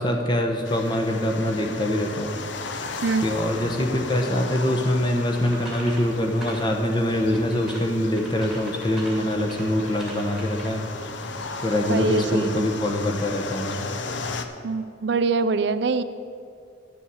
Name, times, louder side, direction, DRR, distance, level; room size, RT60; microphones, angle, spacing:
voice 1, 0.0-2.3 3.2-10.8 11.6-13.8, left 1 dB, 25° left, 3 dB, 1.0 m, -24 dB
sound 1, 0.6-14.4, left 4 dB, 70° left, 0.7 m, -36 dB
sound 2, 5.3-6.7 7.2-10.9, right 1 dB, ahead, 2.1 m, -41 dB
voice 2, 11.9-12.7 14.6-16.0, right 4 dB, 60° right, 12 dB, 0.4 m, -24 dB
10.0 x 7.1 x 7.0 m, 2.4 s
head